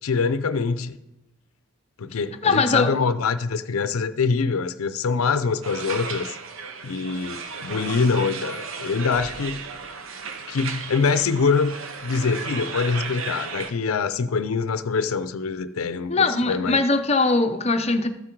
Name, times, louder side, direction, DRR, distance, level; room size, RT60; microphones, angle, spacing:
voice 1, 0.0-1.0 2.0-6.4 6.8-9.6 10.5-11.8 12.0-16.8, left 5 dB, 90° left, 0.5 m, -24 dB
voice 2, 2.4-2.9 16.1-18.1, left 3 dB, 30° left, 0.7 m, -21 dB
sound 1, 5.6-13.7, right 5 dB, 75° right, 0.9 m, -34 dB
13.0 x 8.5 x 4.5 m
head